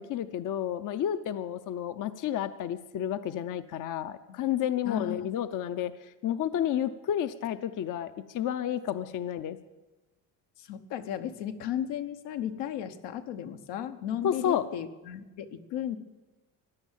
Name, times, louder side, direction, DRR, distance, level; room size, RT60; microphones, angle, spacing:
voice 1, 0.0-9.6 14.2-14.7, left 10 dB, 50° left, 12 dB, 0.6 m, -31 dB
voice 2, 4.9-5.3 10.6-16.0, left 10 dB, 85° left, 7 dB, 1.2 m, -35 dB
15.5 x 10.5 x 7.4 m, 1.1 s
cardioid pair, 125°, 41 cm